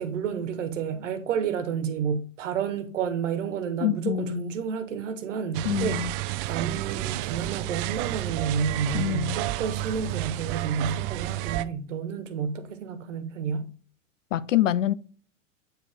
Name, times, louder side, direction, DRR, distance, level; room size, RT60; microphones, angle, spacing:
voice 1, 0.0-6.0 6.5-13.7, right 6 dB, 75° right, 1.4 m, -30 dB
voice 2, 3.8-4.5 5.6-6.1 8.9-9.4 14.3-14.9, left 12 dB, 80° left, 0.6 m, -26 dB
sound 1, 5.5-11.6, right 17 dB, 45° right, 0.6 m, -31 dB
8.7 x 4.9 x 3.4 m
hypercardioid pair, 95°, 38 cm